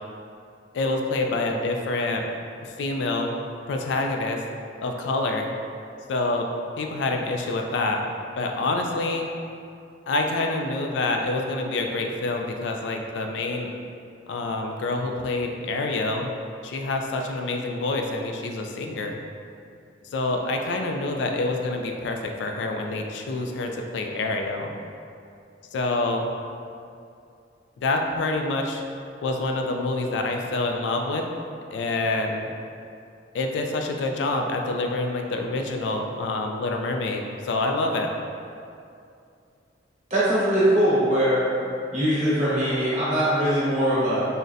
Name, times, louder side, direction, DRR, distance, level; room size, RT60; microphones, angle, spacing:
voice 1, 0.7-2.2 2.6-3.3 3.7-4.4 4.8-5.5 6.1-6.5 6.8-8.1 8.4-9.3 10.1-13.7 14.3-16.3 16.6-19.2 20.1-24.7 25.7-26.3 27.8-28.8 29.2-31.3 31.7-32.5 33.3-38.1, left 2 dB, 70° left, 3 dB, 0.3 m, -27 dB
voice 2, 40.1-41.4 41.9-44.3, equal, 40° right, -10 dB, 1.0 m, -21 dB
3.9 x 2.1 x 2.4 m, 2.5 s
head